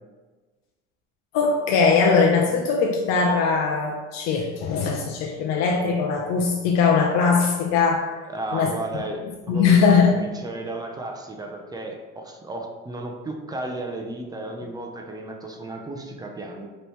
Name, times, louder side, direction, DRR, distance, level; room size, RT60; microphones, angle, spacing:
voice 1, 1.3-8.1 8.5-8.7 9.5-10.2, left 5 dB, 65° left, 0 dB, 0.6 m, -20 dB
voice 2, 8.3-16.7, right 2 dB, 15° right, 1 dB, 0.5 m, -34 dB
5.1 x 3.1 x 3.1 m, 1.3 s
supercardioid pair, 115°, 29 cm